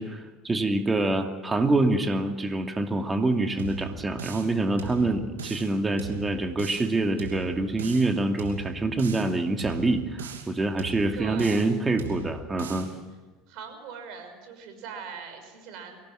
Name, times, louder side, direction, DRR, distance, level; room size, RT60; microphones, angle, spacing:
voice 1, 0.0-12.9, right 2 dB, 20° right, 5 dB, 2.5 m, -26 dB
sound 1, 3.6-4.5 4.8-5.7 6.0-6.9 7.2-8.1 8.4-9.3 9.6-10.5 10.8-11.7 12.0-12.9, right 6 dB, 85° right, 2.8 m, -38 dB
voice 2, 11.1-11.7 13.5-16.0, right 6 dB, 60° right, 6 dB, 5.8 m, -41 dB
24.0 x 17.5 x 7.7 m, 1.3 s
hypercardioid pair, 75°, 0 cm